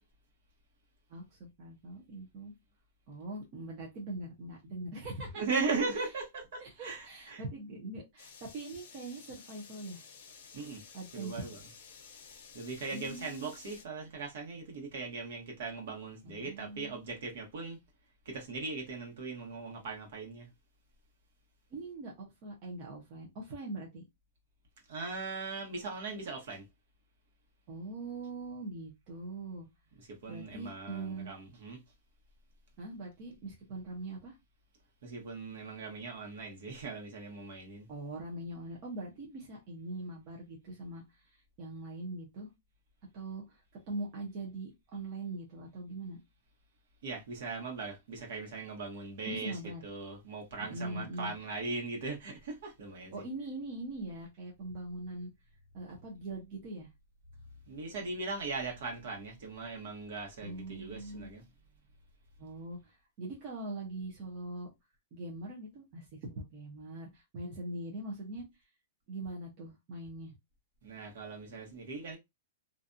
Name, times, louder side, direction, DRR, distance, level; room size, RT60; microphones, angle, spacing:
voice 1, 1.1-2.5 3.1-5.4 6.0-6.1 6.6-10.0 10.9-11.5 12.9-13.5 16.2-17.0 21.7-24.0 27.7-29.7 30.3-31.3 32.8-34.4 37.9-41.2 41.6-42.5 43.1-43.6 43.9-46.2 49.2-49.8 50.6-51.3 53.1-55.3 55.7-56.9 60.4-61.3 62.4-64.7 65.1-68.5 69.1-70.3, right 2 dB, 30° right, 0.7 m, -42 dB
voice 2, 5.4-7.4 10.5-10.8 11.1-11.7 12.5-17.8 18.2-20.5 24.9-26.7 29.9-31.8 35.0-37.9 47.0-53.3 57.7-61.5 70.8-72.2, right 4 dB, 60° right, 1.1 m, -39 dB
sound 1, 8.2-13.8, left 6 dB, 45° left, 0.8 m, -53 dB
2.5 x 2.3 x 2.6 m
supercardioid pair, 170°, 0 cm